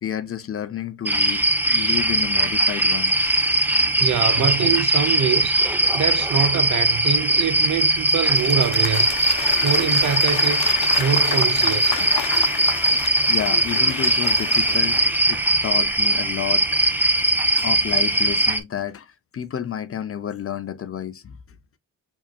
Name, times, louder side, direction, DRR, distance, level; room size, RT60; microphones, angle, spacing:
voice 1, 0.0-4.7 12.0-12.5 13.3-15.0 15.3-19.1 19.3-21.4, left 9 dB, 35° left, 0.6 m, -31 dB
sound 1, 1.1-18.6, right 1 dB, 5° right, 0.6 m, -20 dB
voice 2, 4.0-9.1 9.6-10.6 11.0-12.0, right 8 dB, 50° right, 0.6 m, -24 dB
Applause / Crowd, 7.8-15.6, left 9 dB, 75° left, 0.9 m, -32 dB
4.7 x 3.0 x 2.2 m
supercardioid pair, 60°, 38 cm